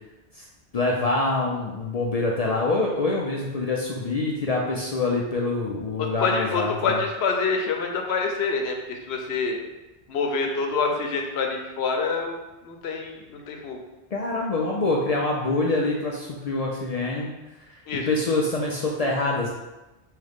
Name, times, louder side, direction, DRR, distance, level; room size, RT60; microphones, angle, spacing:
voice 1, 0.7-7.0 14.1-17.3 17.7-19.5, left 2 dB, 55° left, -2 dB, 0.4 m, -25 dB
voice 2, 6.0-9.6 10.1-13.8 17.9-18.1, left 4 dB, 75° left, 2 dB, 0.9 m, -26 dB
3.7 x 3.2 x 3.5 m, 1.0 s
omnidirectional pair, 1.1 m